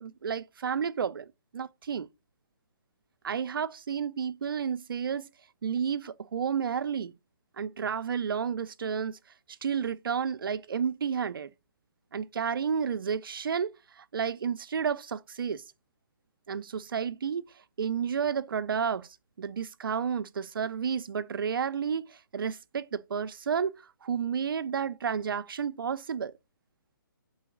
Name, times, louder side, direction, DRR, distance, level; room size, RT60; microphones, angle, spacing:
voice 1, 0.0-1.3 1.5-2.1 3.2-5.3 5.6-7.1 7.6-9.2 9.6-11.5 12.1-15.6 16.5-17.5 17.8-19.1 19.4-26.3, right 7 dB, 70° right, 0.6 m, -31 dB
5.6 x 3.9 x 6.0 m
hypercardioid pair, 160°, 12 cm